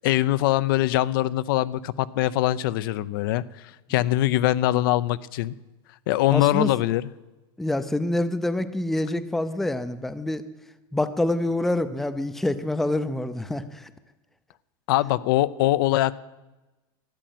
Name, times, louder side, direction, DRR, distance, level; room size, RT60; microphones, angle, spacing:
voice 1, 0.0-3.4 3.9-5.5 6.1-7.1 14.9-16.1, left 15 dB, 65° left, 15 dB, 0.6 m, -22 dB
voice 2, 6.3-6.7 7.6-10.4 10.9-13.9, left 1 dB, ahead, 11 dB, 0.5 m, -26 dB
13.0 x 9.0 x 9.2 m, 1.1 s
supercardioid pair, 160°, 12 cm